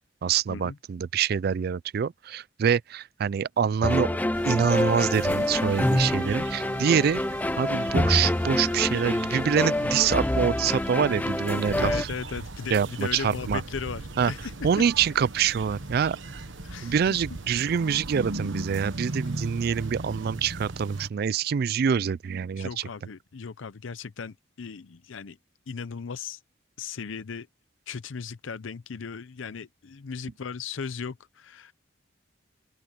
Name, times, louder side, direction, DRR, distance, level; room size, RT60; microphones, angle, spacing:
voice 1, 0.2-4.2 4.4-7.2 7.6-12.1 12.7-13.6 14.2-14.3 14.6-16.4 16.8-22.7, right 7 dB, 50° right, 0.3 m, -25 dB
sound 1, 3.8-12.0, left 1 dB, 10° left, 0.5 m, -26 dB
sound 2, 4.3-21.1, right 2 dB, 75° right, 1.3 m, -38 dB
sound 3, 10.7-19.9, left 1 dB, 45° left, 4.9 m, -54 dB
voice 2, 11.8-14.8 16.6-17.4 22.6-25.4 25.7-26.4 26.8-27.5 27.9-31.7, left 5 dB, 80° left, 0.6 m, -37 dB
open air
head